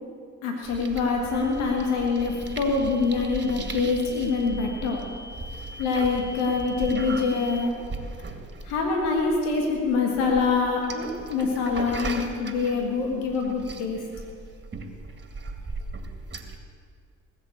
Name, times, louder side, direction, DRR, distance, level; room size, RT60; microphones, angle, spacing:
voice 1, 0.4-5.1 5.8-7.8 8.6-14.0, left 4 dB, 85° left, 1 dB, 1.8 m, -25 dB
sound 1, 0.6-16.6, right 3 dB, 30° right, 2.1 m, -38 dB
sound 2, 1.3-7.7, left 2 dB, 5° left, 4.3 m, -45 dB
18.5 x 8.1 x 7.9 m, 2.2 s
hypercardioid pair, 50°, 37 cm